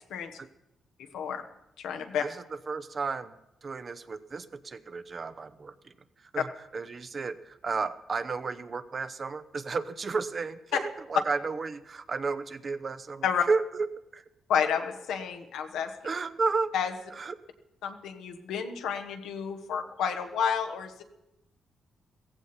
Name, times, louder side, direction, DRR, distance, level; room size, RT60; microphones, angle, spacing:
voice 1, 1.8-2.2 13.2-13.4 14.5-15.9 16.7-16.9 17.8-21.0, left 7 dB, 85° left, 6 dB, 1.2 m, -30 dB
voice 2, 2.7-3.3 3.6-5.9 6.3-6.5 6.7-13.9 14.1-14.2 16.0-16.7 17.1-17.4, right 4 dB, 45° right, 12 dB, 0.8 m, -32 dB
16.0 x 15.0 x 4.4 m, 0.89 s
cardioid pair, 70°, 0 cm